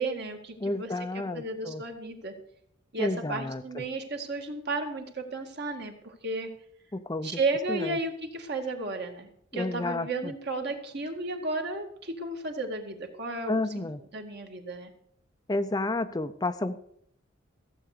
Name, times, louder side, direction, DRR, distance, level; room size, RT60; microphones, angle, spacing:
voice 1, 0.0-2.3 2.9-6.5 7.2-13.8 14.1-14.9, right 2 dB, 55° right, 4 dB, 2.1 m, -33 dB
voice 2, 0.6-1.8 3.0-3.8 6.9-7.4 7.7-8.0 9.5-10.3 13.5-14.0 15.5-16.8, left 2 dB, 20° left, 10 dB, 0.5 m, -31 dB
15.5 x 8.0 x 6.7 m, 0.68 s
head